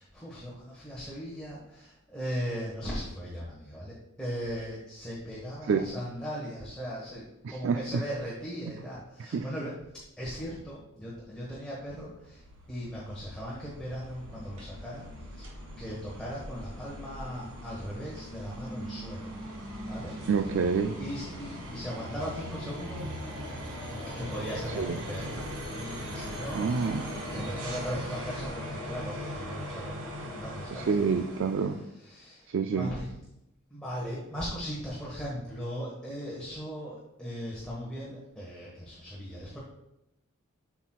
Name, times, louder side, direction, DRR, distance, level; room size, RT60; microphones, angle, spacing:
voice 1, 0.0-9.8 10.2-12.4 12.7-15.0 15.3-15.5 15.8-19.3 19.8-20.2 21.0-23.1 24.1-31.2 31.6-33.2 33.7-39.6, equal, 5° left, -7 dB, 1.3 m, -38 dB
voice 2, 7.4-8.0 9.3-9.5 20.3-21.0 24.8-24.9 26.5-27.1 30.7-31.8 32.5-32.9, right 5 dB, 60° right, 7 dB, 0.3 m, -27 dB
sound 1, 12.1-31.8, equal, 85° right, 1.8 m, -40 dB
8.2 x 5.9 x 2.3 m, 0.86 s
head